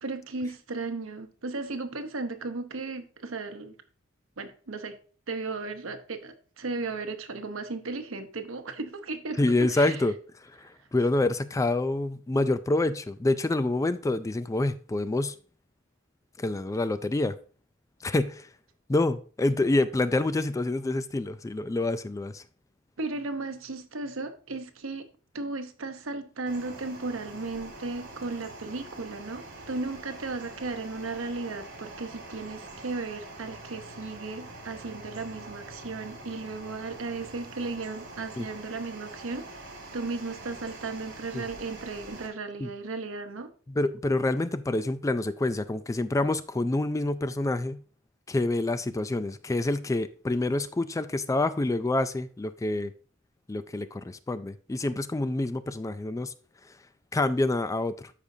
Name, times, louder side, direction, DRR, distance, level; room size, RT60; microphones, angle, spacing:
voice 1, 0.0-3.7 4.4-5.0 5.3-10.0 23.0-25.1 25.3-39.7 39.9-43.5, right 3 dB, 85° right, 0.9 m, -35 dB
voice 2, 9.4-10.1 10.4-15.4 16.4-17.4 18.0-18.5 18.9-22.4 38.4-38.5 41.3-41.4 42.6-42.7 43.7-47.8 48.3-52.9 53.5-56.3 57.1-58.1, left 2 dB, 15° left, 0.3 m, -27 dB
sound 1, 26.5-42.3, right 2 dB, 60° right, 2.5 m, -44 dB
13.0 x 5.1 x 2.7 m
head